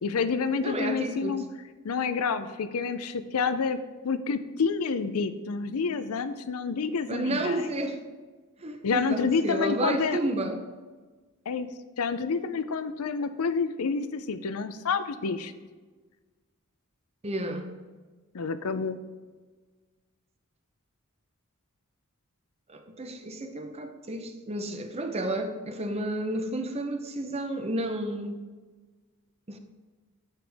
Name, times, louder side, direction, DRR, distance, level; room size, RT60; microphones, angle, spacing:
voice 1, 0.0-1.4 1.8-3.8 4.0-7.6 8.8-10.2 11.5-11.7 12.0-15.5 18.3-19.0, left 5 dB, 75° left, 0.5 m, -28 dB
voice 2, 0.6-1.4 7.1-8.0 8.6-10.6 17.2-17.7 22.7-28.4 29.5-29.6, right 1 dB, 30° right, 0.7 m, -31 dB
9.9 x 6.9 x 3.5 m
head